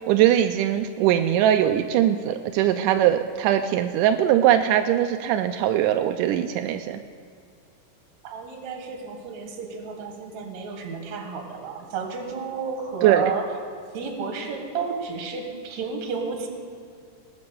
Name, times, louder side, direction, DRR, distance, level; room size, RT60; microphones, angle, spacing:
voice 1, 0.1-7.0 13.0-13.3, right 11 dB, 90° right, 7 dB, 2.1 m, -21 dB
voice 2, 8.2-13.4 13.9-16.5, right 5 dB, 65° right, 4 dB, 2.7 m, -32 dB
19.0 x 6.8 x 6.8 m, 2.3 s
omnidirectional pair, 3.6 m